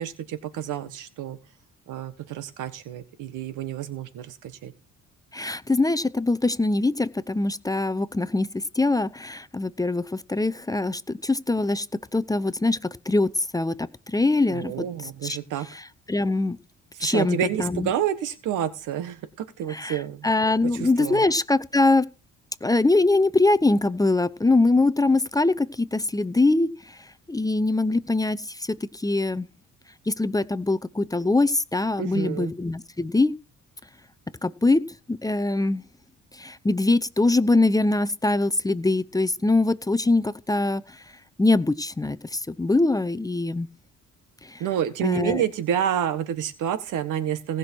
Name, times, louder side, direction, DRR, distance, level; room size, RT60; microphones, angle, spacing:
voice 1, 0.0-1.4 1.9-4.7 14.5-15.7 17.0-20.3 20.8-21.2 32.0-32.5 44.6-47.6, right 9 dB, 85° right, 1.5 m, -29 dB
voice 2, 5.3-11.9 12.1-14.8 15.2-15.4 15.7-16.6 17.0-17.9 19.7-22.1 22.6-29.5 30.1-33.3 34.4-35.8 36.3-41.0 41.4-43.7 44.4-44.6 45.0-45.4, left 2 dB, 10° left, 0.7 m, -23 dB
18.5 x 6.2 x 4.6 m
cardioid pair, 90°, 30 cm